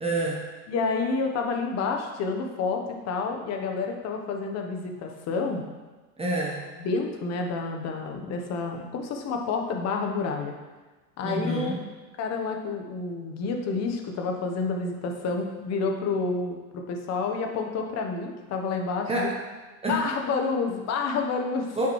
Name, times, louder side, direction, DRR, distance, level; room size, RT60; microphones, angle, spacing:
voice 1, 0.0-0.5 6.2-6.6 11.2-11.7 19.1-19.4 19.8-20.0 21.8-21.9, right 1 dB, 15° right, -2 dB, 1.0 m, -27 dB
voice 2, 0.7-5.6 6.8-10.6 11.2-11.8 12.2-19.3 19.9-21.8, left 4 dB, 40° left, 3 dB, 1.1 m, -29 dB
8.8 x 5.9 x 3.2 m, 1.3 s
supercardioid pair, 130°, 42 cm